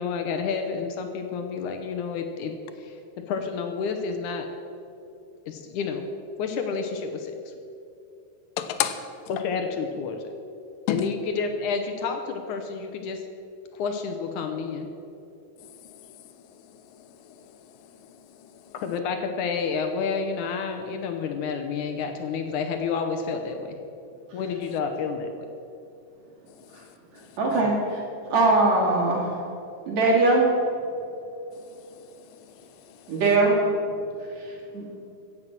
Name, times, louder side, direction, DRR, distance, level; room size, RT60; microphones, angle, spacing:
voice 1, 0.0-3.0 3.3-4.5 5.5-6.0 6.4-7.3 9.3-10.2 10.9-13.2 13.7-14.9 18.8-23.8 24.3-25.5, left 5 dB, 70° left, 5 dB, 2.2 m, -29 dB
voice 2, 8.6-9.0 10.9-11.1 17.3-17.4 18.0-18.2 18.7-18.8 26.6-26.7 32.0-32.1 32.6-33.1, left 10 dB, 90° left, 9 dB, 2.5 m, -30 dB
voice 3, 27.4-28.0 28.3-29.3 29.9-30.4 33.1-33.7 34.4-34.5 34.7-34.9, right 2 dB, 55° right, -3 dB, 3.8 m, -21 dB
16.0 x 7.6 x 7.5 m, 2.6 s
omnidirectional pair, 3.9 m